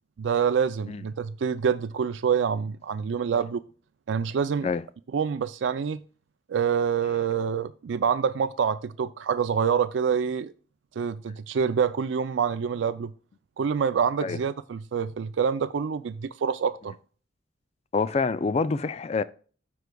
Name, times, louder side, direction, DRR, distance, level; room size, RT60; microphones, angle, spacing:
voice 1, 0.2-3.6 4.1-4.7 5.1-6.0 6.5-10.5 11.0-13.1 13.6-16.9, right 7 dB, 85° right, 0.4 m, -26 dB
voice 2, 17.9-19.2, left 4 dB, 35° left, 0.3 m, -26 dB
13.0 x 4.6 x 2.3 m
head